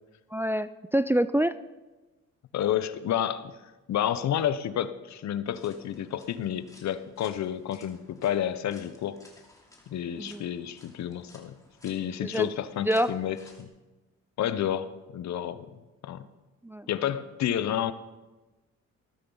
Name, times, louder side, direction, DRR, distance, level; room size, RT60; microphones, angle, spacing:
voice 1, 0.3-1.6 10.2-10.4 12.2-12.5 12.8-13.1 16.6-16.9, right 1 dB, 10° right, 14 dB, 0.3 m, -26 dB
voice 2, 2.5-3.6 3.9-9.2 9.9-11.5 11.8-13.7 14.4-15.7 16.0-16.2 16.9-17.9, left 10 dB, 65° left, 13 dB, 0.8 m, -30 dB
sound 1, 5.4-13.6, left 2 dB, 10° left, 2.8 m, -57 dB
14.5 x 13.0 x 3.9 m, 1.1 s
cardioid pair, 90°, 30 cm